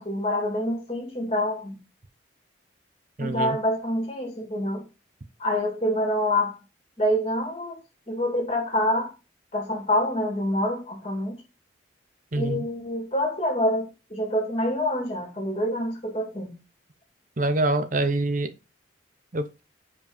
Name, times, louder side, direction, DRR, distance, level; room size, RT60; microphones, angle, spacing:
voice 1, 0.0-1.8 3.2-4.8 5.4-6.5 7.0-7.8 8.1-9.1 9.5-11.3 12.3-16.5, left 1 dB, 30° left, 2.6 m, -26 dB
voice 2, 3.2-3.6 12.3-12.7 17.4-18.5 19.3-19.5, right 2 dB, 40° right, 0.8 m, -25 dB
5.4 x 4.9 x 5.0 m
head